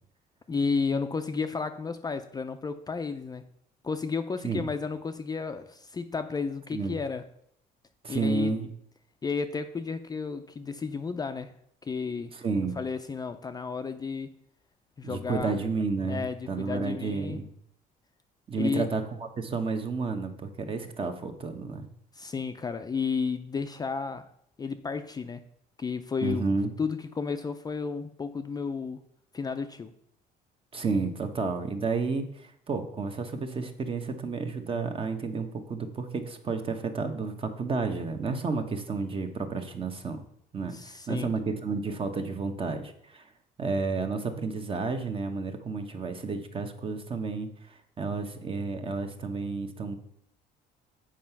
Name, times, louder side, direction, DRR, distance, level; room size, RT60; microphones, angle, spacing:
voice 1, 0.5-3.5 3.8-7.3 8.1-8.5 9.2-11.5 11.8-12.3 12.8-14.3 15.0-15.6 16.1-17.4 18.6-18.9 22.1-24.3 24.6-25.4 25.8-26.5 26.8-29.0 29.3-29.9 40.7-41.3, left 5 dB, 25° left, 8 dB, 0.4 m, -32 dB
voice 2, 8.0-8.7 12.3-12.8 15.0-17.5 18.5-21.9 26.2-26.7 30.7-40.2 40.5-43.2 43.6-49.9, right 4 dB, 30° right, 7 dB, 1.0 m, -31 dB
7.4 x 4.8 x 5.7 m, 0.70 s
cardioid pair, 110°, 17 cm